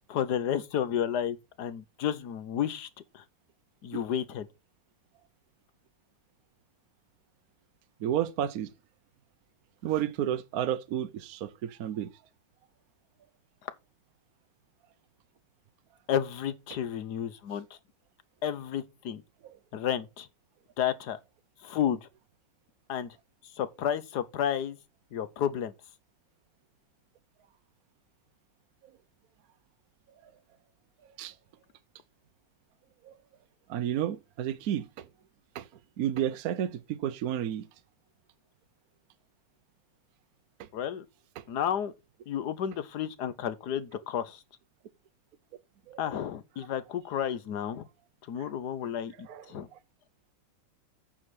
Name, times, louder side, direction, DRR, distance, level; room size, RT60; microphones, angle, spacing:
voice 1, 0.1-2.9 3.1-3.2 3.8-4.5 16.1-17.7 18.4-19.2 19.7-20.3 20.8-21.2 21.6-22.1 22.9-23.2 23.6-24.8 25.1-25.7 40.7-41.0 41.5-41.9 42.3-44.4 46.0-47.9 48.3-49.7, left 9 dB, 65° left, 1.3 m, -31 dB
voice 2, 8.0-8.7 9.8-12.1 19.4-19.6 30.2-30.3 31.2-31.3 33.0-33.1 33.7-35.1 35.5-35.7 36.0-37.7 41.4-41.5 45.9-46.0 48.4-48.5 49.3-49.6, right 10 dB, 65° right, 0.9 m, -31 dB
8.6 x 4.9 x 6.0 m
omnidirectional pair, 2.1 m